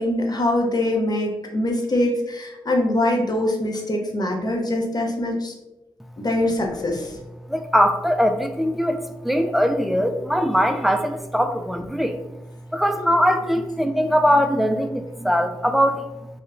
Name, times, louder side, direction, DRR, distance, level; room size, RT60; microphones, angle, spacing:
voice 1, 0.0-5.5 6.2-7.1, left 1 dB, 40° left, 1 dB, 0.6 m, -23 dB
voice 2, 7.5-12.2 12.7-16.1, equal, ahead, 6 dB, 0.3 m, -21 dB
2.9 x 2.1 x 2.4 m, 0.98 s
supercardioid pair, 40°, 10 cm